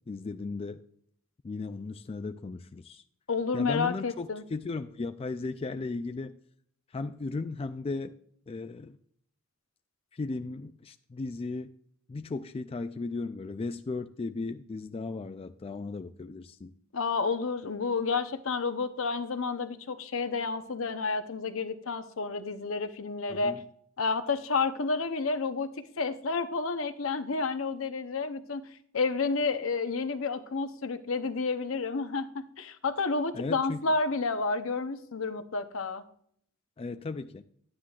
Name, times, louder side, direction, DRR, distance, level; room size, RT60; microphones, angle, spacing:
voice 1, 0.1-0.8 1.4-3.0 3.5-6.3 6.9-8.2 8.5-9.0 10.1-11.7 12.1-16.7 23.3-23.6 33.3-33.8 36.8-37.4, left 3 dB, 30° left, 0.3 m, -36 dB
voice 2, 3.3-4.4 16.9-23.6 24.0-28.7 28.9-36.0, left 4 dB, 75° left, 0.8 m, -30 dB
11.5 x 9.6 x 2.4 m
head